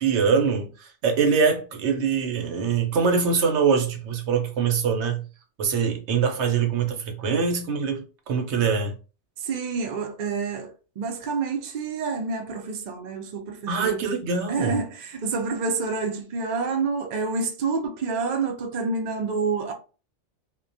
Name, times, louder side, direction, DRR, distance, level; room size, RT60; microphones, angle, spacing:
voice 1, 0.0-5.3 5.6-9.0 13.7-14.8, right 5 dB, 75° right, 0.9 m, -23 dB
voice 2, 9.4-14.0 14.5-19.7, right 4 dB, 60° right, 0.5 m, -28 dB
2.2 x 2.1 x 2.5 m
omnidirectional pair, 1.2 m